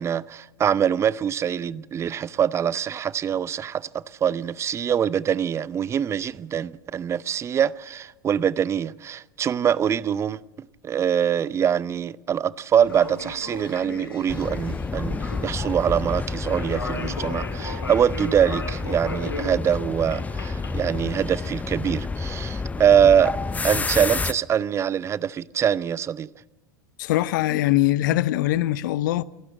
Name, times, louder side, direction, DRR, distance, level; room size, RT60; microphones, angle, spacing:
voice 1, 0.0-10.4 10.8-23.4 23.6-26.3, right 8 dB, 25° right, 0.6 m, -24 dB
sound 1, 12.8-24.1, left 2 dB, 85° left, 2.7 m, -38 dB
sound 2, 14.3-24.3, left 4 dB, 15° left, 0.7 m, -30 dB
voice 2, 27.0-29.2, left 15 dB, 60° left, 0.8 m, -22 dB
28.0 x 12.0 x 7.6 m
figure-of-eight pair, 85°, 11 cm